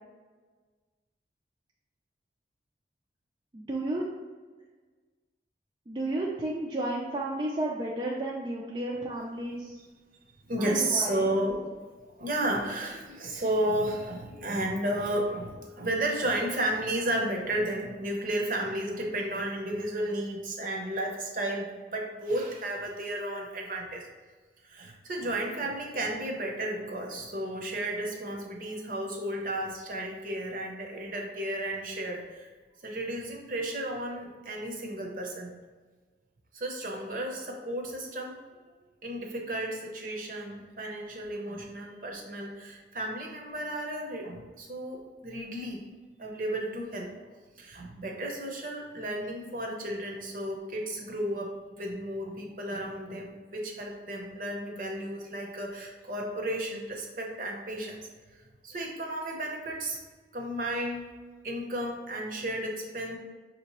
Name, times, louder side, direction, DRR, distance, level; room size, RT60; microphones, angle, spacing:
voice 1, 3.5-4.0 5.9-9.8 10.6-11.2, right 1 dB, 25° right, -3 dB, 0.4 m, -32 dB
voice 2, 10.4-11.6 12.0-24.1 24.6-32.5 32.8-35.6 36.5-38.4 39.0-45.8 46.2-47.2 47.6-58.0 58.6-60.0 60.3-61.1 61.4-63.2, right 1 dB, 50° right, 1 dB, 0.7 m, -33 dB
6.0 x 2.8 x 3.0 m, 1.4 s
head